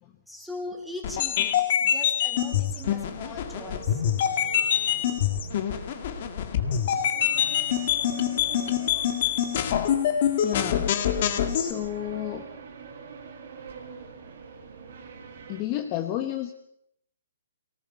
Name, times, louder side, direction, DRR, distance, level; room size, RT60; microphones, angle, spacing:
voice 1, 0.3-4.0 4.4-4.9, left 1 dB, ahead, 0 dB, 3.1 m, -40 dB
sound 1, 1.0-11.7, left 10 dB, 40° left, 1.9 m, -25 dB
sound 2, 2.7-15.6, right 5 dB, 50° right, 3.8 m, -44 dB
voice 2, 10.4-10.9 11.6-12.5 15.5-16.5, left 13 dB, 25° left, 5 dB, 1.1 m, -31 dB
24.0 x 18.5 x 5.8 m, 0.73 s
hypercardioid pair, 165°, 0 cm